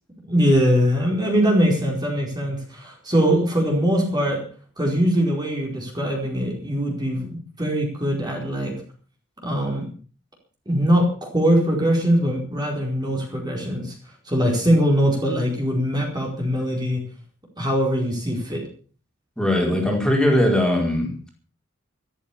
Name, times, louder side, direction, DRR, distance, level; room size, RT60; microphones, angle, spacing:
voice 1, 0.3-4.4 4.8-8.7 9.4-9.9 10.7-11.1 11.3-13.9 14.3-17.0 17.6-18.6, equal, 20° right, -1 dB, 4.5 m, -21 dB
voice 2, 19.4-21.3, left 1 dB, 5° left, -1 dB, 4.7 m, -20 dB
14.0 x 13.5 x 7.0 m, 0.42 s
head